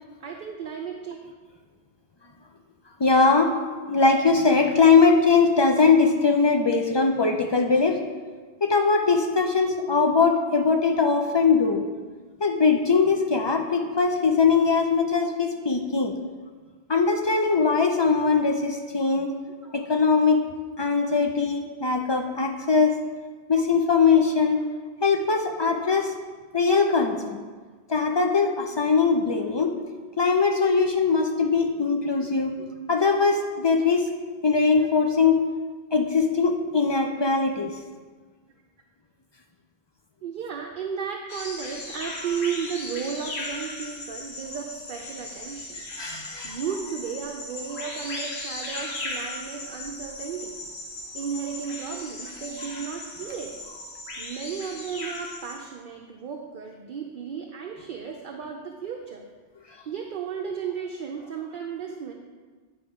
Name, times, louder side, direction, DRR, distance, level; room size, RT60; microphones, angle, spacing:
voice 1, 0.2-1.2 15.1-15.3 15.7-15.9 19.6-19.7 23.5-23.6 26.7-26.8 32.2-32.3 32.6-32.7 40.2-45.8 46.4-50.6 51.1-53.5 54.2-59.2 59.9-62.1, right 7 dB, 60° right, 2 dB, 0.7 m, -34 dB
voice 2, 3.0-3.5 3.9-8.0 8.6-11.8 12.4-16.2 16.9-19.4 19.7-20.4 20.8-23.0 23.5-24.6 25.0-26.1 26.5-27.4 27.9-29.8 30.2-32.5 32.9-34.1 34.4-35.4 35.9-37.7 45.7-46.6, left 4 dB, 45° left, 3 dB, 0.3 m, -21 dB
sound 1, 41.3-55.6, left 2 dB, 80° left, 1.2 m, -37 dB
9.6 x 3.4 x 4.8 m, 1.4 s
omnidirectional pair, 1.1 m